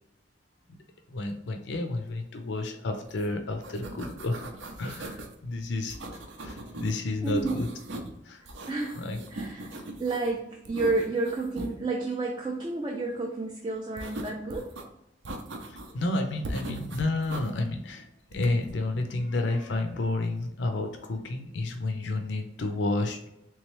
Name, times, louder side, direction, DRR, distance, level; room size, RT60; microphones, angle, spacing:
voice 1, 1.1-4.4 4.8-7.7 8.2-8.5 9.0-9.2 15.6-23.3, left 2 dB, 70° left, 5 dB, 0.5 m, -31 dB
sound 1, 3.1-3.3 3.5-5.3 5.9-6.9 7.2-8.2 8.5-10.3 10.7-11.7 14.0-14.8 15.3-16.0 16.4-17.5 18.3-18.7, right 1 dB, 80° right, 0.6 m, -40 dB
voice 2, 7.2-7.6 8.7-9.0 9.3-9.7 10.0-14.7, right 3 dB, 25° right, 0 dB, 0.3 m, -30 dB
3.6 x 3.0 x 3.1 m, 0.84 s
head